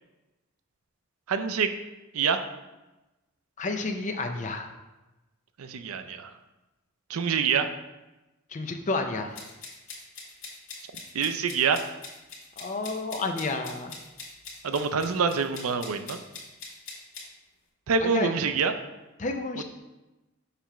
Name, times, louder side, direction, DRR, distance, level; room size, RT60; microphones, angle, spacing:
voice 1, 1.3-1.7 2.1-2.4 5.6-6.3 7.1-7.7 11.1-11.8 14.6-16.2 17.9-18.7, right 5 dB, 85° right, 9 dB, 0.5 m, -26 dB
voice 2, 3.6-4.7 8.5-9.4 12.6-14.0 18.0-18.3 19.2-19.6, left 3 dB, 35° left, 5 dB, 0.5 m, -30 dB
sound 1, 9.3-17.3, left 4 dB, 65° left, 1.8 m, -42 dB
6.7 x 3.0 x 5.7 m, 1.1 s
head